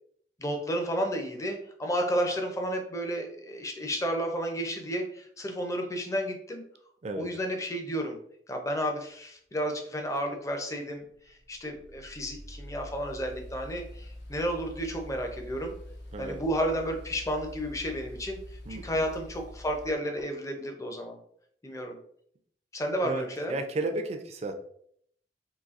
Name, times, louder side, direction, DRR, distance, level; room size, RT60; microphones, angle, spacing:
voice 1, 0.4-6.6 7.2-8.2 8.5-11.0 11.5-15.8 16.2-18.4 18.7-21.2 21.6-22.0 22.7-23.6, equal, 20° left, 3 dB, 0.5 m, -32 dB
sound 1, 10.2-19.9, left 1 dB, 75° left, 0.7 m, -45 dB
voice 2, 16.1-16.4 18.7-19.1 23.0-24.5, right 2 dB, 40° right, 5 dB, 0.4 m, -34 dB
4.0 x 2.7 x 2.5 m, 0.66 s
head